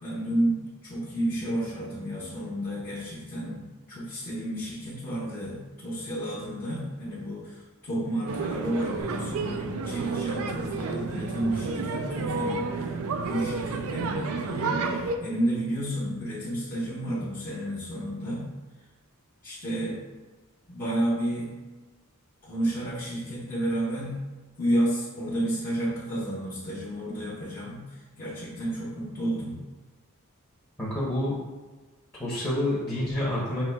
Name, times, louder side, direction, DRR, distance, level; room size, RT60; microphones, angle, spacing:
voice 1, 0.0-7.6 7.8-14.7 15.2-18.5 19.4-20.0 20.7-21.5 22.4-24.2 24.6-29.6, right 1 dB, 40° left, -7 dB, 1.0 m, -31 dB
sound 1, 8.3-15.2, right 4 dB, 70° right, 0.4 m, -31 dB
sound 2, 9.0-14.0, right 3 dB, 90° left, 1.2 m, -41 dB
voice 2, 30.8-31.3 32.2-33.6, left 1 dB, 15° left, -9 dB, 0.9 m, -28 dB
5.7 x 3.1 x 2.3 m, 1.2 s
head